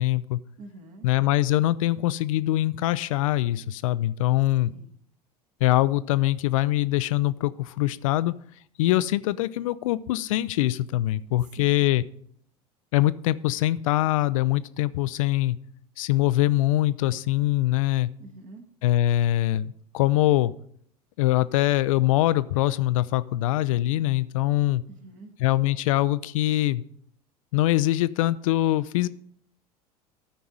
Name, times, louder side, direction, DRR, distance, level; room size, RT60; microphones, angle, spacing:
voice 1, 0.0-0.4 1.0-4.7 5.6-8.3 8.8-12.0 12.9-15.6 16.0-18.1 18.8-20.5 21.2-24.8 25.4-26.8 27.5-29.1, left 15 dB, 55° left, 16 dB, 0.4 m, -23 dB
voice 2, 0.6-1.1 4.6-4.9 11.6-11.8 18.2-18.6 24.9-25.3, right 2 dB, 40° right, 5 dB, 1.6 m, -46 dB
13.0 x 4.6 x 5.3 m, 0.66 s
figure-of-eight pair, 75°, 20 cm